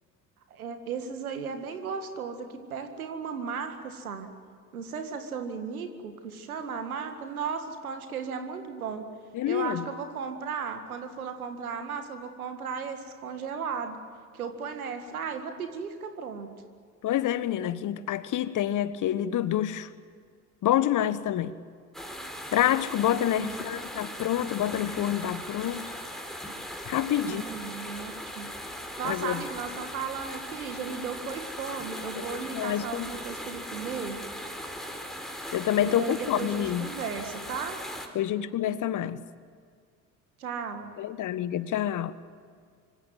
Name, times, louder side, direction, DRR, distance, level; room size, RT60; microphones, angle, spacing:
voice 1, 0.5-4.3 4.7-9.1 9.5-14.0 14.3-16.5 23.4-23.7 27.3-28.5 29.0-34.2 35.8-37.8 40.4-40.9, right 6 dB, 75° right, 2.0 m, -35 dB
voice 2, 9.3-9.8 17.0-19.9 20.6-21.5 22.5-25.9 26.9-27.4 29.0-29.4 32.3-33.1 35.5-36.9 38.1-39.2 41.0-42.1, left 11 dB, 45° left, 1.4 m, -27 dB
sound 1, 21.9-38.1, equal, ahead, 4.3 m, -39 dB
25.5 x 25.0 x 7.8 m
figure-of-eight pair, 55°, 43 cm